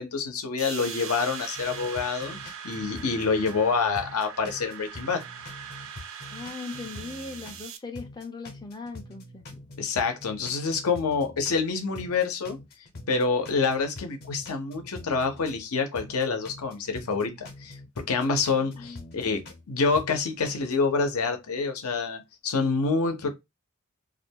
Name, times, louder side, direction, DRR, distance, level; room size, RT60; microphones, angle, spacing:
voice 1, 0.0-2.4 2.6-5.2 9.8-12.6 13.1-23.3, left 4 dB, 90° left, 0.7 m, -27 dB
sound 1, 0.6-7.8, right 8 dB, 65° right, 0.4 m, -41 dB
sound 2, 1.5-3.6 3.9-7.6 7.9-11.6 11.9-15.6 15.9-19.6 19.9-20.7, left 2 dB, 50° left, 0.7 m, -45 dB
voice 2, 6.3-9.4 18.6-19.1, left 3 dB, 20° left, 0.4 m, -39 dB
2.4 x 2.2 x 2.7 m
head